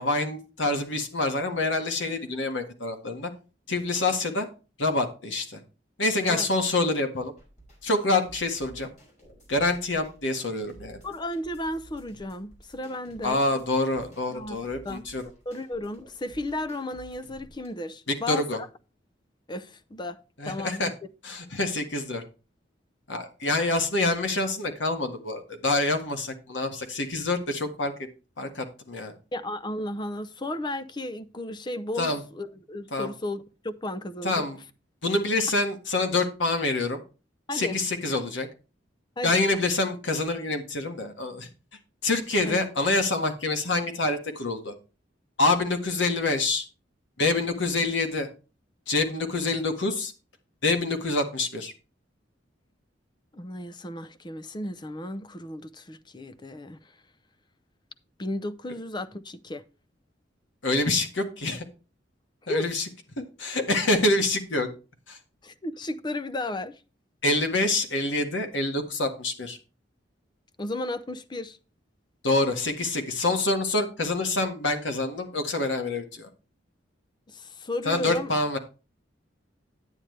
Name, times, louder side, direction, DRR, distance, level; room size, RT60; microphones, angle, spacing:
voice 1, 0.0-3.3 3.7-4.5 4.8-5.6 6.0-7.3 7.8-8.9 9.5-11.0 13.2-15.2 18.1-18.6 20.4-20.9 21.2-22.2 23.1-27.9 28.4-29.1 32.0-32.2 32.9-33.1 34.2-34.6 35.0-37.0 37.5-38.5 39.2-41.5 42.0-44.7 45.4-46.6 47.2-48.3 48.9-50.1 50.6-51.7 60.6-61.7 62.5-62.9 63.2-64.7 65.1-65.2 67.2-69.6 72.2-76.3 77.9-78.6, left 2 dB, 75° left, 1.7 m, -26 dB
sound 1, 7.4-17.7, right 1 dB, 40° left, 5.4 m, -53 dB
voice 2, 11.0-13.5 14.3-14.6 14.8-15.0 15.5-18.7 19.5-20.9 29.3-34.5 37.5-37.8 39.2-39.4 42.5-42.6 53.3-56.8 58.2-59.6 62.5-62.7 65.4-66.8 70.6-71.6 77.3-78.3, left 1 dB, 25° left, 0.6 m, -34 dB
10.0 x 8.9 x 3.3 m
head